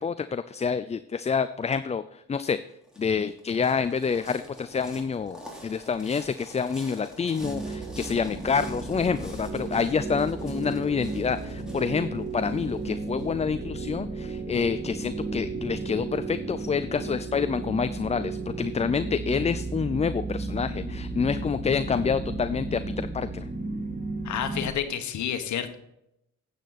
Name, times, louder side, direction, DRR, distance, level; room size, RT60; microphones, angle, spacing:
voice 1, 0.0-2.6 3.0-23.5, left 6 dB, 20° left, 12 dB, 0.4 m, -28 dB
sound 1, 2.4-13.2, left 1 dB, ahead, 3.4 m, -47 dB
sound 2, 7.4-24.7, right 3 dB, 25° right, 1.9 m, -34 dB
voice 2, 24.2-25.7, left 9 dB, 70° left, 8 dB, 1.3 m, -30 dB
9.1 x 8.3 x 4.1 m, 0.81 s
cardioid pair, 90°, 30 cm